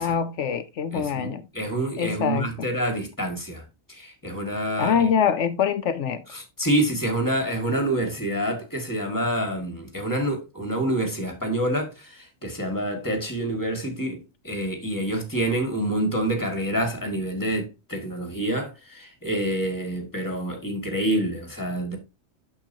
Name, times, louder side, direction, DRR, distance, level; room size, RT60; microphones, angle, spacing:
voice 1, 0.0-1.5 2.0-2.7 4.8-6.2, left 7 dB, 65° left, 0.9 m, -24 dB
voice 2, 0.9-3.6 3.9-5.1 6.3-22.0, right 1 dB, 15° left, 1.9 m, -27 dB
8.9 x 6.8 x 2.7 m
omnidirectional pair, 1.4 m